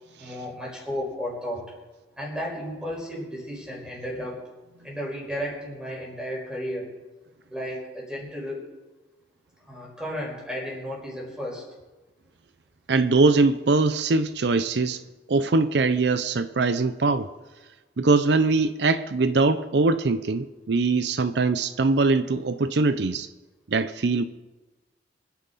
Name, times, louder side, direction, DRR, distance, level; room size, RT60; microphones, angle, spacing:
voice 1, 0.2-1.7 2.2-4.4 4.8-6.9 7.5-8.7 9.7-11.6, equal, 5° right, 5.1 m, -33 dB
voice 2, 12.9-15.0 15.3-17.3 18.0-23.3 23.7-24.2, right 3 dB, 75° right, 0.6 m, -22 dB
26.0 x 10.0 x 4.1 m
head